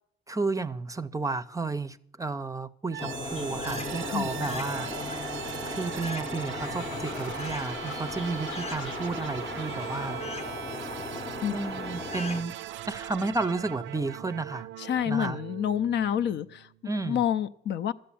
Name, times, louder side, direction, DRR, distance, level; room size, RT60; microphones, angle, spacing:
voice 1, 0.3-4.9 5.7-10.2 11.5-12.5 12.9-14.7 15.1-15.4 16.8-17.2, right 3 dB, 15° right, 0.5 m, -32 dB
sound 1, 2.9-16.8, right 13 dB, 70° right, 0.4 m, -40 dB
sound 2, 3.0-12.4, left 3 dB, 30° left, 0.8 m, -36 dB
Train, 3.2-10.3, left 5 dB, 90° left, 1.2 m, -45 dB
voice 2, 4.1-4.5 11.4-11.5 14.8-16.7 17.0-17.9, left 9 dB, 60° left, 0.5 m, -28 dB
13.0 x 7.8 x 8.5 m
cardioid pair, 90°, 20 cm